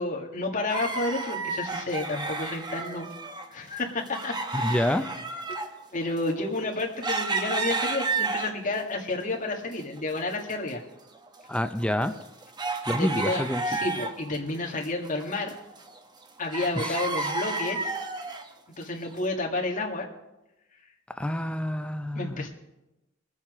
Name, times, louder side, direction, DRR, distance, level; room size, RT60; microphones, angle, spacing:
voice 1, 0.0-3.1 3.5-5.2 5.9-10.8 12.9-15.5 16.4-17.9 18.8-20.1 22.2-22.5, left 2 dB, 40° left, -1 dB, 1.9 m, -31 dB
sound 1, 0.7-3.5 3.7-8.8 9.3-10.2 10.4-10.5 11.1-14.4 14.7-16.2 16.5-18.5 19.1-19.2, right 3 dB, 20° right, 0.9 m, -32 dB
voice 2, 4.5-5.1 11.5-12.1 12.9-13.6 16.8-17.3 21.2-22.5, left 1 dB, 5° left, 9 dB, 0.4 m, -28 dB
21.5 x 7.3 x 4.9 m, 0.97 s
head